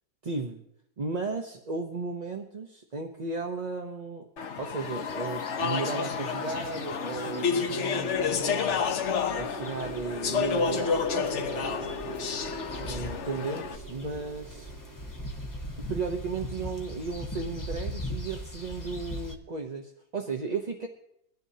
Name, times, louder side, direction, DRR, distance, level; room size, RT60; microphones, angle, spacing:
voice 1, 0.2-0.6 1.0-4.3 4.6-8.8 9.3-11.8 12.8-14.7 15.9-20.9, right 4 dB, 35° right, 3 dB, 0.8 m, -35 dB
Speech / Chatter, 4.4-13.7, left 6 dB, 55° left, 1.0 m, -30 dB
sound 1, 4.8-19.4, equal, 15° left, 1.1 m, -41 dB
sound 2, 7.8-16.2, right 1 dB, 75° right, 2.7 m, -42 dB
22.0 x 13.0 x 2.8 m, 0.77 s
omnidirectional pair, 1.6 m